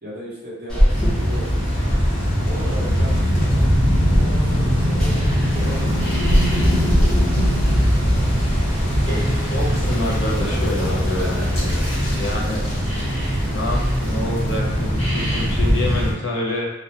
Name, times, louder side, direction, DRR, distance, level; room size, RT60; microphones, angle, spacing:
voice 1, 0.0-1.6 2.4-3.7 4.1-6.6 10.4-10.6 11.2-11.3, equal, 50° right, -8 dB, 0.9 m, -36 dB
sound 1, 0.7-15.7, equal, 5° left, 0.5 m, -26 dB
sound 2, 0.9-16.1, equal, 30° left, 0.7 m, -21 dB
voice 2, 9.0-11.8 12.2-12.6 13.5-16.7, left 1 dB, 65° left, -2 dB, 0.5 m, -27 dB
2.1 x 2.1 x 2.8 m, 0.91 s
head